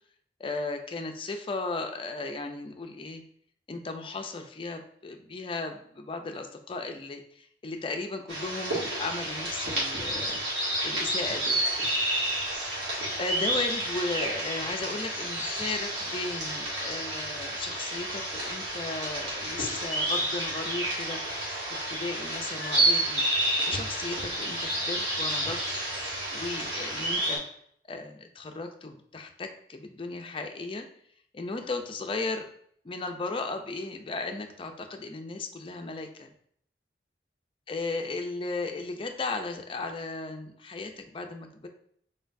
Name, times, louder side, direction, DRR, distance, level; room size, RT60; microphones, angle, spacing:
voice 1, 0.4-3.2 3.7-10.4 10.8-11.6 13.2-21.2 21.7-23.2 23.6-25.6 26.3-27.5 27.8-30.9 31.3-32.5 32.8-36.3 37.7-41.7, left 3 dB, 30° left, 5 dB, 0.4 m, -35 dB
sound 1, 8.3-27.4, right 1 dB, 75° right, 1.8 m, -30 dB
4.2 x 3.8 x 2.6 m, 0.64 s
head